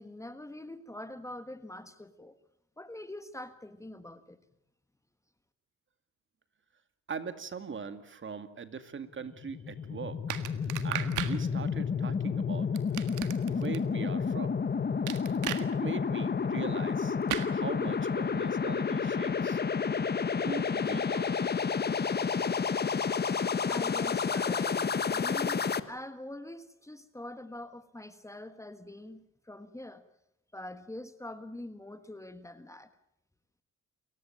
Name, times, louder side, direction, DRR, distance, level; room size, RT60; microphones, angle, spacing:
voice 1, 0.0-2.4 2.8-4.4 23.7-30.1 30.5-32.9, left 1 dB, 10° left, 11 dB, 1.5 m, -44 dB
voice 2, 7.1-10.4 10.8-12.7 13.5-14.6 15.6-17.2 17.5-19.6 20.4-21.5, right 5 dB, 40° right, 10 dB, 2.2 m, -41 dB
sound 1, 9.2-25.8, left 6 dB, 35° left, 1.3 m, -30 dB
sound 2, 10.3-11.4 12.8-13.8 15.1-15.6 17.3-17.5, right 13 dB, 90° right, 1.7 m, -35 dB
28.5 x 15.5 x 8.9 m, 0.79 s
cardioid pair, 90°, 30 cm